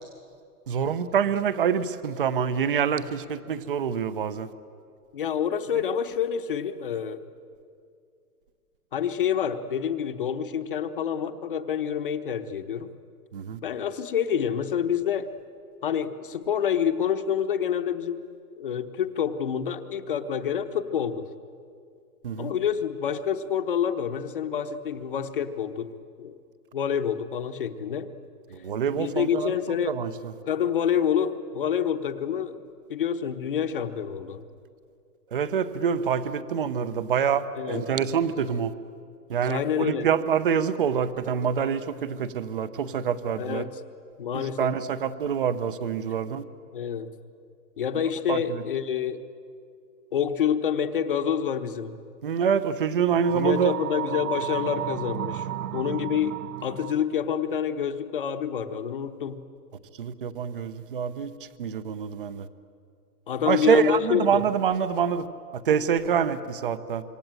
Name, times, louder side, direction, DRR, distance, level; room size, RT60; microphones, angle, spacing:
voice 1, 0.7-4.5 13.3-13.6 22.2-22.5 28.5-29.5 29.8-30.3 35.3-38.7 39.3-43.6 44.3-46.5 48.3-48.6 52.2-53.7 60.0-62.5 63.5-65.3 65.5-67.0, right 7 dB, 35° right, 14 dB, 0.8 m, -26 dB
voice 2, 5.1-7.2 8.9-12.9 13.6-15.3 15.8-18.2 18.6-21.3 22.4-26.4 26.7-28.1 28.9-30.0 30.5-32.6 32.9-34.4 37.6-37.8 39.5-40.1 43.4-43.7 44.2-44.8 46.7-47.1 47.8-49.2 50.1-52.0 53.3-55.5 55.7-59.4 63.3-64.5, left 8 dB, 35° left, 9 dB, 1.0 m, -27 dB
sound 1, 53.2-57.1, right 12 dB, 65° right, 0.7 m, -33 dB
26.0 x 23.5 x 9.0 m, 2.4 s
hypercardioid pair, 180°, 48 cm